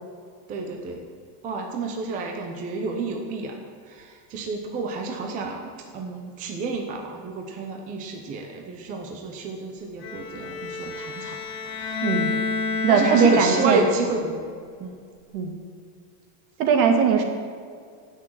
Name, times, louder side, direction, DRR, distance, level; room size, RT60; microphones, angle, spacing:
voice 1, 0.5-1.0 1.4-3.6 3.8-12.0 12.9-14.5 14.8-15.0, right 4 dB, 15° right, 2 dB, 0.6 m, -30 dB
Bowed string instrument, 10.0-14.2, left 4 dB, 60° left, 2.5 m, -29 dB
voice 2, 12.0-12.3 12.8-13.8 15.3-15.5 16.6-17.2, right 6 dB, 60° right, 4 dB, 2.2 m, -19 dB
16.0 x 6.5 x 8.6 m, 2.2 s
supercardioid pair, 180°, 48 cm